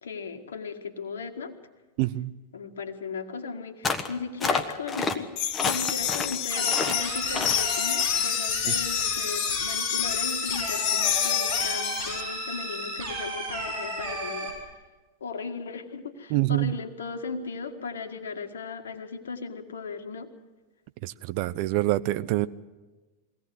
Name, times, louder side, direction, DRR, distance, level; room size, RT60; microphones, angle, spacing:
voice 1, 0.0-1.5 2.5-14.5 15.2-20.3, left 5 dB, 65° left, 1.8 m, -37 dB
voice 2, 2.0-2.3 16.3-16.7 21.0-22.5, right 17 dB, 45° right, 0.7 m, -25 dB
sound 1, 3.8-4.1 4.4-5.2 5.5-6.4 6.7-7.0 7.3-7.6, left 4 dB, 20° left, 1.5 m, -28 dB
sound 2, 5.4-12.2, left 10 dB, 40° left, 1.7 m, -28 dB
sound 3, 6.5-14.5, right 1 dB, 65° right, 7.7 m, -33 dB
23.0 x 17.5 x 7.9 m
figure-of-eight pair, 90°, 0 cm